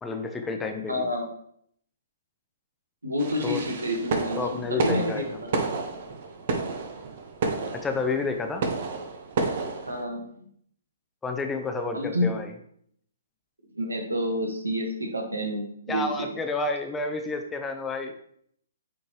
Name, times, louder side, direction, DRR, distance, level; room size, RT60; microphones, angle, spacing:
voice 1, 0.0-1.1 3.4-3.6 4.4-5.4 7.7-8.6 11.2-12.5 15.9-18.1, left 3 dB, 10° left, 5 dB, 0.6 m, -30 dB
voice 2, 0.9-1.3 3.0-5.5 9.9-10.5 11.9-12.3 13.7-16.3, equal, 85° right, 3 dB, 1.5 m, -29 dB
sound 1, 3.2-10.0, right 4 dB, 50° right, 0.9 m, -31 dB
8.3 x 3.9 x 3.1 m, 0.67 s
figure-of-eight pair, 125°, 0 cm